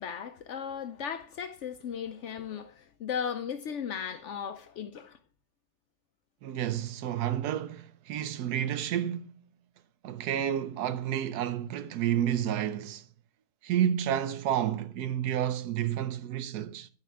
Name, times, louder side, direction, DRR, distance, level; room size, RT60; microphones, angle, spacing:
voice 1, 0.0-5.2, left 7 dB, 65° left, 0.7 m, -36 dB
voice 2, 6.4-9.3 10.0-13.0 13.6-16.9, right 10 dB, 90° right, 1.2 m, -30 dB
10.5 x 4.8 x 4.5 m
omnidirectional pair, 1.6 m